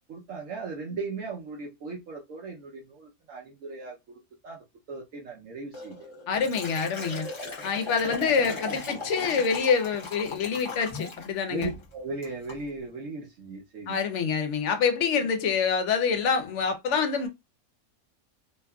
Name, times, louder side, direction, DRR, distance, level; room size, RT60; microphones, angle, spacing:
voice 1, 0.1-6.1 7.9-9.4 11.5-14.0, right 3 dB, 70° right, 1.0 m, -38 dB
Liquid, 5.7-11.3 11.6-11.9 12.2-12.6, left 3 dB, 30° left, 0.6 m, -38 dB
voice 2, 6.3-7.3 7.6-11.7 13.9-17.3, left 6 dB, 65° left, 0.8 m, -26 dB
2.8 x 2.4 x 2.2 m
omnidirectional pair, 1.5 m